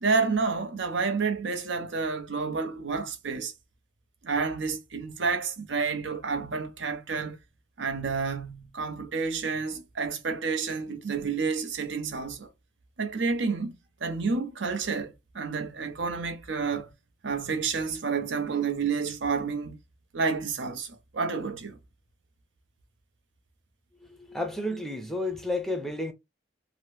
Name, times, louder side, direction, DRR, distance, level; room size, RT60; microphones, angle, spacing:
voice 1, 0.0-3.5 4.2-7.4 7.8-12.5 13.0-13.7 14.0-16.9 17.2-19.8 20.1-21.8, right 4 dB, 85° right, 0.7 m, -29 dB
voice 2, 24.0-26.1, left 1 dB, ahead, 0.5 m, -31 dB
2.8 x 2.1 x 3.2 m
head